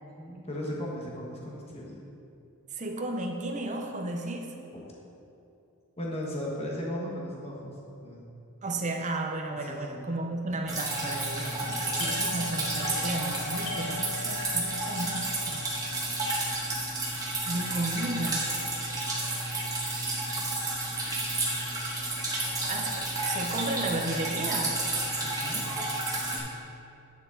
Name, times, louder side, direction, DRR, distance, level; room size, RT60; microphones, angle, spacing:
voice 1, 0.0-2.0 4.7-4.8 6.0-7.7 8.0-8.3 9.5-10.1 11.5-12.2 25.2-25.6, equal, 30° left, -3 dB, 1.4 m, -37 dB
voice 2, 2.7-4.6 8.6-15.7 17.5-18.5 22.7-24.8, right 2 dB, 35° right, 3 dB, 0.7 m, -33 dB
Drip, 10.7-26.4, right 2 dB, 15° right, 1.5 m, -31 dB
Doorbell, 11.7-21.1 21.3-21.4 22.0-22.4 22.7-24.1, left 3 dB, 85° left, 1.1 m, -43 dB
9.4 x 6.4 x 3.9 m, 2.7 s
head